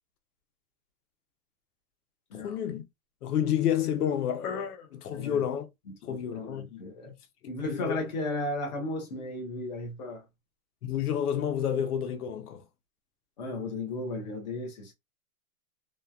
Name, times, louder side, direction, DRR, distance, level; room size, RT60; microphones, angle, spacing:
voice 1, 2.3-2.8 3.2-5.7 6.0-6.8 7.6-8.1 10.8-12.6, left 9 dB, 90° left, 0.9 m, -30 dB
voice 2, 5.1-5.4 5.9-7.1 7.5-10.2 13.4-14.9, left 2 dB, 30° left, 0.8 m, -35 dB
3.1 x 2.1 x 2.3 m
supercardioid pair, 180°, 44 cm